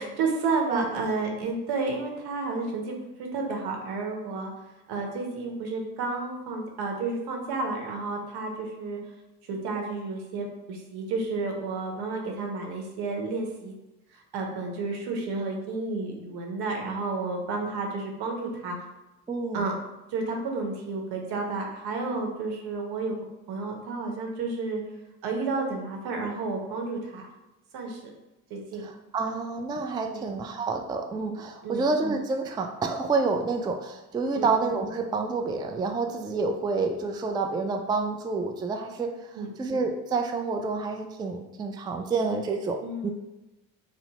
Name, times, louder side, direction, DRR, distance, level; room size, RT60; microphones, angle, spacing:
voice 1, 0.0-4.5 4.9-9.0 9.5-13.7 14.1-18.8 19.5-19.7 20.1-23.2 23.5-24.8 25.2-27.3 27.7-28.0 28.5-28.8 30.1-30.3 31.6-31.8 34.4-34.5 39.3-39.5 42.8-43.1, right 3 dB, 70° right, 2 dB, 0.8 m, -31 dB
voice 2, 19.3-19.6 28.8-42.8 43.0-43.1, right 4 dB, 10° right, 3 dB, 0.3 m, -28 dB
2.7 x 2.0 x 4.0 m, 1.0 s
hypercardioid pair, 55°, 39 cm